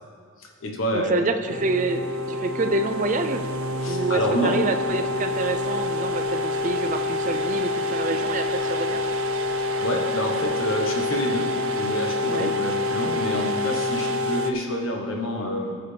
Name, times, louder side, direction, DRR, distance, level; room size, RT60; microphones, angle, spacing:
voice 1, 0.4-1.1 3.8-4.6 9.6-15.7, equal, 75° left, 1 dB, 1.2 m, -28 dB
voice 2, 0.9-3.4 3.9-9.0 12.3-12.5, right 3 dB, 40° right, 7 dB, 0.5 m, -27 dB
sound 1, 1.5-14.5, left 2 dB, 90° right, 0.6 m, -27 dB
16.0 x 6.8 x 3.4 m, 2.2 s
head